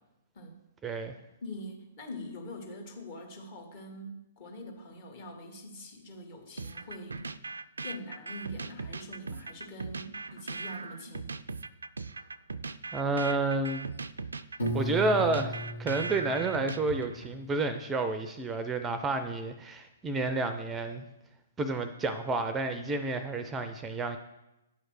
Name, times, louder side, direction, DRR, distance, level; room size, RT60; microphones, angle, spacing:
voice 1, 0.8-1.1 12.9-13.9 14.7-21.0 21.6-24.2, right 3 dB, 15° right, 9 dB, 0.4 m, -30 dB
voice 2, 1.4-7.2 7.8-11.3, left 1 dB, 45° left, 2 dB, 1.5 m, -44 dB
sound 1, 6.6-17.4, right 3 dB, 75° right, 0.3 m, -39 dB
Piano, 14.6-17.5, equal, 75° left, 1.6 m, -36 dB
8.6 x 3.2 x 6.3 m, 0.93 s
figure-of-eight pair, 120°, 0 cm